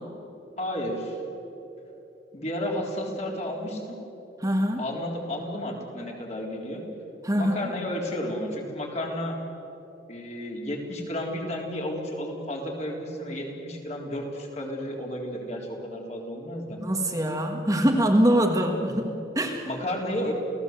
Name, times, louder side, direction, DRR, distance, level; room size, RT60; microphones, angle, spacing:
voice 1, 0.6-1.2 2.3-4.0 4.8-6.8 7.3-9.4 10.1-16.8 19.6-20.3, left 1 dB, 40° left, 0 dB, 3.9 m, -32 dB
voice 2, 4.4-4.8 7.2-7.7 16.8-19.7, equal, 20° right, 2 dB, 1.6 m, -24 dB
29.0 x 17.0 x 8.1 m, 3.0 s
head